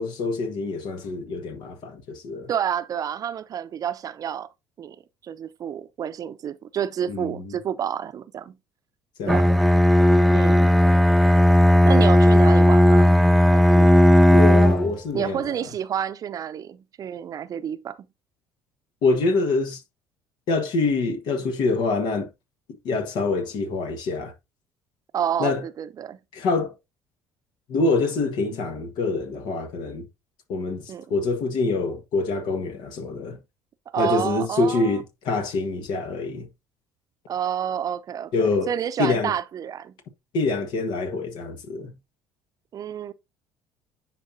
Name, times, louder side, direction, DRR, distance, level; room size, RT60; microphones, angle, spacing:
voice 1, 0.0-2.5 7.1-7.6 9.2-9.4 14.3-15.5 19.0-19.8 20.5-22.3 22.8-24.3 25.4-25.6 26.3-26.7 27.7-30.1 30.5-33.4 34.0-36.5 38.3-38.7 39.0-39.3 40.3-41.9, left 3 dB, 65° left, 1.5 m, -25 dB
voice 2, 2.5-4.5 4.8-5.0 5.2-8.6 9.3-9.5 10.3-10.8 11.8-13.2 13.5-14.0 15.1-18.1 25.1-26.2 30.9-31.1 33.9-35.0 37.3-38.3 38.7-39.9 42.7-43.1, right 9 dB, 45° right, 0.7 m, -29 dB
Bowed string instrument, 9.3-15.0, equal, ahead, 0.4 m, -15 dB
9.9 x 4.2 x 2.7 m
hypercardioid pair, 65°, 8 cm